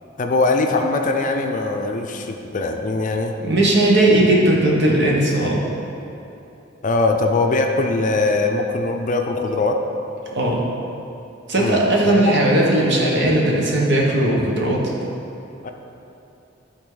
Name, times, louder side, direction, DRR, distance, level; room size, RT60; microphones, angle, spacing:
voice 1, 0.2-3.3 6.8-9.8 11.6-12.4 15.6-15.7, left 3 dB, 40° left, 4 dB, 0.5 m, -21 dB
voice 2, 3.4-5.6 10.3-10.6 11.5-14.8, right 1 dB, 60° right, -3 dB, 1.3 m, -17 dB
12.5 x 4.2 x 3.9 m, 2.9 s
head